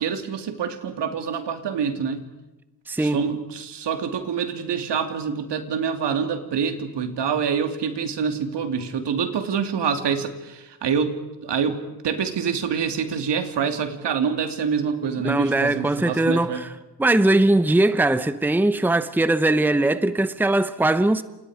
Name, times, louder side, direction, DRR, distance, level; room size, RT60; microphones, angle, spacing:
voice 1, 0.0-2.3 3.0-16.6, right 6 dB, 75° right, 2.9 m, -26 dB
voice 2, 2.9-3.2 15.2-16.7 17.0-21.2, right 2 dB, 5° right, 0.9 m, -20 dB
29.0 x 28.5 x 5.0 m
wide cardioid pair, 125°, 42 cm